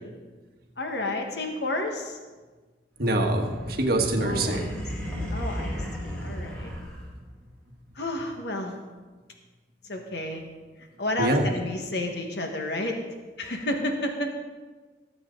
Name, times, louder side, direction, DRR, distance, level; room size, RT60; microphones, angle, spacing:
voice 1, 0.8-2.2 4.2-4.7 5.3-6.7 7.9-8.8 9.8-10.5 11.0-13.0 13.4-14.3, left 1 dB, 65° left, 3 dB, 1.5 m, -31 dB
voice 2, 3.0-4.7 5.1-5.2 11.2-11.5, right 1 dB, 55° right, 3 dB, 1.4 m, -25 dB
sound 1, 3.1-7.4, equal, 5° left, 2.5 m, -34 dB
19.0 x 7.9 x 3.9 m, 1.3 s
head